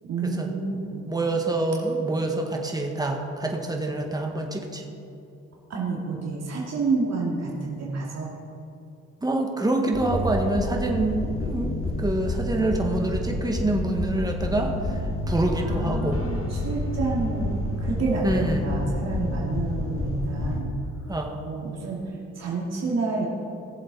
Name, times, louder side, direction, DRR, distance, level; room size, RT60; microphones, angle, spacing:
voice 1, 0.0-1.1 5.7-8.3 15.6-20.7 21.4-23.2, right 3 dB, 60° right, -3 dB, 2.5 m, -29 dB
voice 2, 1.1-4.8 9.2-16.2 18.2-18.7 21.1-21.4, right 2 dB, 10° right, 1 dB, 1.8 m, -26 dB
sound 1, 9.9-20.6, left 1 dB, 45° left, 1.9 m, -29 dB
18.5 x 7.7 x 4.2 m, 2.8 s
cardioid pair, 90°, 30 cm